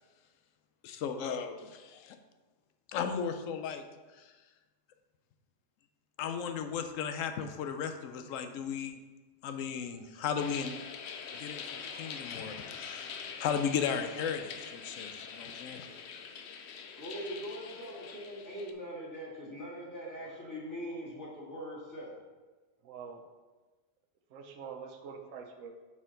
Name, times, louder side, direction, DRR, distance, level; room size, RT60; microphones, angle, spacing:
voice 1, 0.8-2.2 2.9-3.8 4.1-4.3 6.2-9.0 9.4-10.8 11.3-15.9, left 7 dB, 90° left, 7 dB, 1.0 m, -35 dB
sound 1, 10.4-18.7, left 6 dB, 65° left, 0.8 m, -44 dB
voice 2, 17.0-22.2, equal, 15° left, -7 dB, 1.7 m, -42 dB
voice 3, 22.8-23.2 24.3-25.7, right 6 dB, 90° right, 5 dB, 1.1 m, -45 dB
5.9 x 4.5 x 3.8 m, 1.3 s
omnidirectional pair, 1.3 m